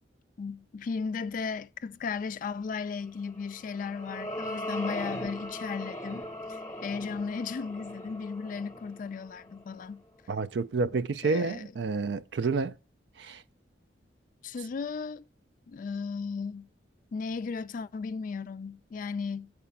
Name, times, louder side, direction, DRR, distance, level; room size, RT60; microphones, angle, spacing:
voice 1, 0.4-10.0 11.2-11.7 14.4-15.2 15.7-16.7 17.1-19.5, left 5 dB, 50° left, 0.3 m, -35 dB
sound 1, 3.4-9.9, left 1 dB, 15° left, 0.8 m, -39 dB
voice 2, 10.3-12.8 13.2-13.4, right 4 dB, 70° right, 0.4 m, -29 dB
7.5 x 4.8 x 7.0 m
head